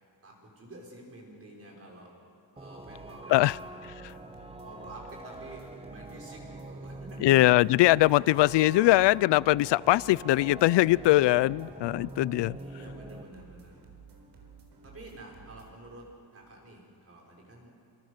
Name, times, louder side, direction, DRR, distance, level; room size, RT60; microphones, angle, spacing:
voice 1, 0.2-2.1 2.5-3.6 4.6-7.5 12.5-13.8 14.8-16.0 16.3-17.7, right 1 dB, 30° right, -1 dB, 5.9 m, -49 dB
sound 1, 2.6-13.2, right 2 dB, 15° right, 1.1 m, -45 dB
sound 2, 2.8-15.7, right 5 dB, 60° right, 4.5 m, -53 dB
voice 2, 7.2-12.6, left 17 dB, 70° left, 22 dB, 0.5 m, -22 dB
27.5 x 26.5 x 6.7 m, 2.6 s
cardioid pair, 160°, 44 cm